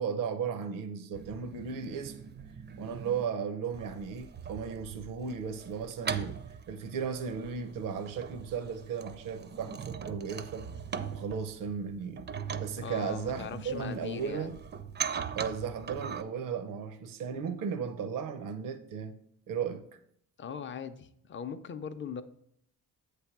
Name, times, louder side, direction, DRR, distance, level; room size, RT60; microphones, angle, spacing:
voice 1, 0.0-2.2 2.8-6.4 6.7-10.7 11.1-12.3 12.6-14.6 15.3-19.2 19.5-19.9, right 6 dB, 80° right, 0.6 m, -35 dB
sound 1, 1.1-3.2 3.7-16.2, right 7 dB, 35° right, 0.4 m, -41 dB
voice 2, 12.8-14.6 20.4-22.2, left 7 dB, 35° left, 0.5 m, -40 dB
8.0 x 3.4 x 6.0 m
cardioid pair, 100°, 33 cm